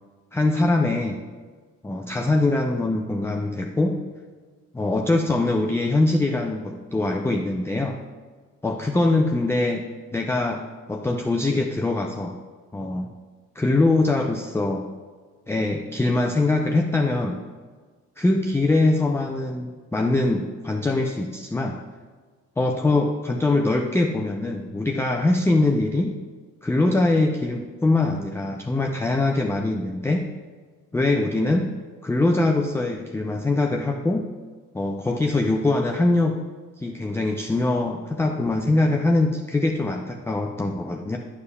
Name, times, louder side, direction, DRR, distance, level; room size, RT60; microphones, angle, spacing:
voice 1, 0.3-1.2 1.8-4.0 4.7-8.0 8.6-9.8 10.1-10.6 10.9-12.4 12.7-13.1 13.6-14.8 15.5-17.4 18.2-21.8 22.6-26.2 26.6-30.3 30.9-31.7 32.0-34.3 34.7-36.4 36.8-41.2, left 2 dB, 5° left, 2 dB, 0.5 m, -23 dB
9.4 x 7.0 x 2.2 m, 1.5 s
hypercardioid pair, 50°, 41 cm